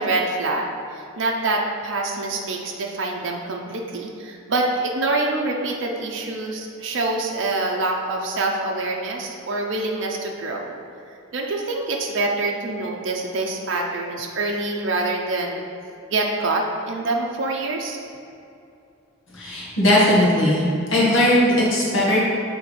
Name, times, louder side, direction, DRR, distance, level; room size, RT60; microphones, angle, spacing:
voice 1, 0.0-10.7 11.3-15.7 16.1-18.0, right 2 dB, 60° right, 0 dB, 0.6 m, -25 dB
voice 2, 19.3-20.6 20.9-22.2, left 1 dB, 65° left, -6 dB, 1.4 m, -18 dB
6.8 x 3.5 x 4.9 m, 2.6 s
head